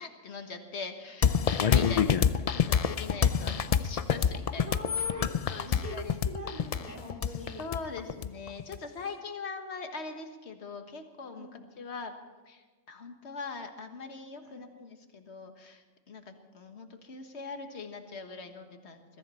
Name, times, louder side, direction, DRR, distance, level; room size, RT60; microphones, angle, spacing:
voice 1, 0.0-4.7 5.5-6.2 7.6-11.5 11.8-12.1 12.4-19.0, left 4 dB, 55° left, 6 dB, 1.7 m, -42 dB
sound 1, 1.2-8.8, left 7 dB, 75° left, 0.3 m, -26 dB
voice 2, 4.6-7.7 11.3-11.6 14.4-14.7, equal, 30° right, 0 dB, 2.8 m, -43 dB
22.0 x 14.0 x 4.3 m, 1.3 s
omnidirectional pair, 1.3 m